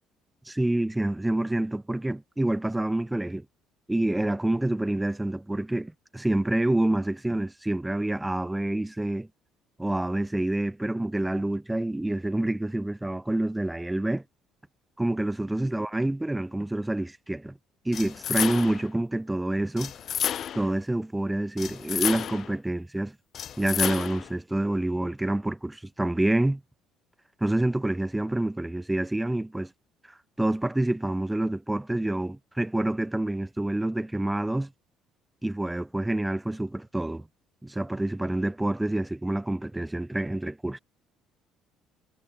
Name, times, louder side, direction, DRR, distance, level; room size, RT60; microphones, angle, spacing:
voice 1, 0.5-3.5 3.9-9.3 9.8-14.2 15.0-17.6 17.9-19.9 20.5-23.2 23.6-26.6 27.4-29.7 30.4-34.7 35.4-37.3 37.6-40.8, right 1 dB, 5° right, 2.1 m, -27 dB
sound 1, 17.9-18.9 19.8-20.7 21.6-22.5 23.3-24.3, left 9 dB, 40° left, 1.2 m, -31 dB
cardioid pair, 170°, 0 cm